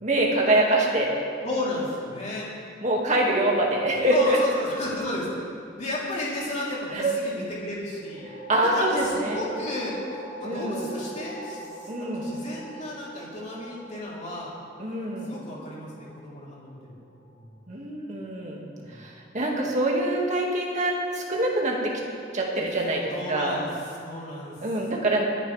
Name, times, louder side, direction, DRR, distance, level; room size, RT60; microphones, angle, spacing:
voice 1, 0.0-1.1 2.8-4.4 6.9-7.1 8.5-9.4 10.4-10.9 11.9-12.3 14.8-15.3 17.7-18.6 19.0-21.9 22.3-23.6 24.6-25.2, right 1 dB, 40° right, -2 dB, 2.2 m, -25 dB
voice 2, 1.4-2.5 4.1-5.3 5.8-8.3 8.6-10.0 10.4-14.5 15.3-16.8 17.3-17.5 18.7-19.0 23.1-23.7 24.0-24.6, left 1 dB, 40° left, -6 dB, 3.6 m, -33 dB
sound 1, 7.9-17.3, equal, 10° right, 2.2 m, -42 dB
25.0 x 10.0 x 3.5 m, 2.4 s
head